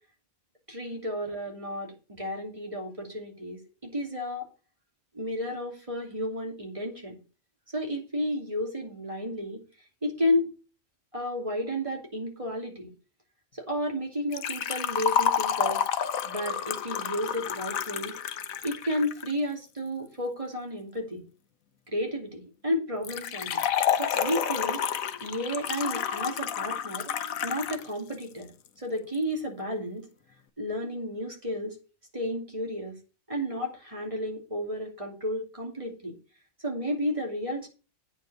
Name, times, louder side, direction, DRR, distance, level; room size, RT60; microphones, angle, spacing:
voice 1, 0.7-4.4 5.1-7.1 7.7-9.6 10.0-10.5 11.1-12.9 13.6-15.8 16.2-18.1 18.6-21.2 21.9-23.6 24.0-24.8 25.2-27.1 27.4-28.5 28.8-30.0 30.6-31.7 32.1-32.9 33.3-36.1 36.6-37.7, left 1 dB, 25° right, 0 dB, 2.9 m, -32 dB
Liquid, 14.3-19.3 23.0-27.9 28.1-28.2 29.1-29.2, left 9 dB, 80° left, 1.2 m, -29 dB
8.9 x 5.2 x 7.9 m, 0.33 s
omnidirectional pair, 1.4 m